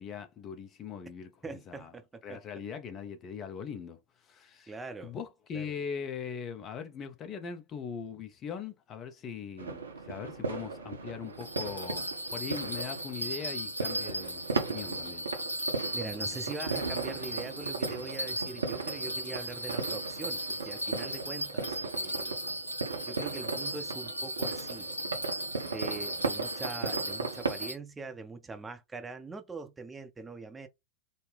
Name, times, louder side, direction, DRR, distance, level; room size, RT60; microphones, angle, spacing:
voice 1, 0.0-1.9 2.2-4.7 5.0-15.2, left 7 dB, 30° left, 0.7 m, -41 dB
voice 2, 1.4-2.4 4.7-5.2 5.5-5.7 15.9-22.4 23.1-24.9 25.6-30.7, right 3 dB, 10° right, 0.7 m, -42 dB
sound 1, 9.6-27.7, right 4 dB, 75° right, 0.8 m, -37 dB
Bell, 11.4-27.7, right 1 dB, 85° left, 1.1 m, -37 dB
4.0 x 2.1 x 3.3 m
figure-of-eight pair, 90°, 0 cm